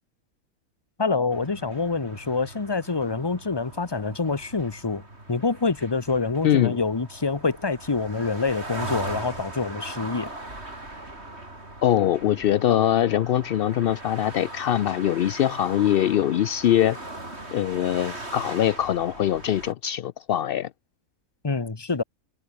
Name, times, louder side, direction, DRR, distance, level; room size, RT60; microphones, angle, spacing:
voice 1, 1.0-5.0 5.3-10.3 21.4-22.0, left 4 dB, 20° left, 1.0 m, -26 dB
sound 1, 1.3-19.7, right 2 dB, 45° right, 5.9 m, -40 dB
voice 2, 6.4-6.8 11.8-17.0 17.5-20.7, left 11 dB, 75° left, 0.5 m, -22 dB
omnidirectional pair, 1.5 m